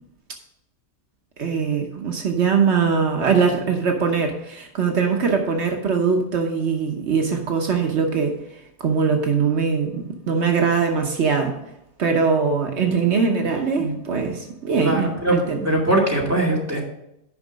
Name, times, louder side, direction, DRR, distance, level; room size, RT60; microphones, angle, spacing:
voice 1, 1.4-8.4 8.8-11.6 12.0-15.6, right 5 dB, 75° right, 3 dB, 1.3 m, -21 dB
voice 2, 14.8-15.4 15.6-16.8, right 1 dB, 15° right, -3 dB, 2.2 m, -21 dB
9.7 x 5.5 x 5.1 m, 0.83 s
omnidirectional pair, 1.2 m